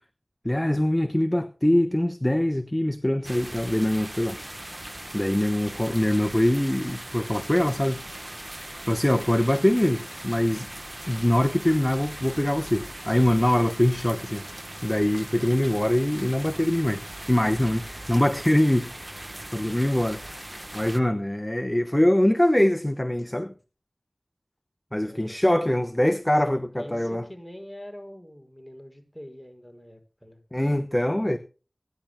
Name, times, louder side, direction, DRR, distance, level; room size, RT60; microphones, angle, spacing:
voice 1, 0.4-4.4 5.1-8.0 8.9-10.7 11.1-14.4 14.8-17.8 18.1-19.1 19.5-20.2 20.7-23.5 24.9-27.2 30.5-31.4, left 1 dB, 15° left, 0.9 m, -23 dB
sound 1, 3.2-21.0, right 1 dB, 30° right, 1.1 m, -39 dB
voice 2, 25.0-25.4 26.3-30.4, equal, ahead, 6.1 m, -44 dB
25.0 x 10.5 x 2.2 m
wide cardioid pair, 45°, 0 cm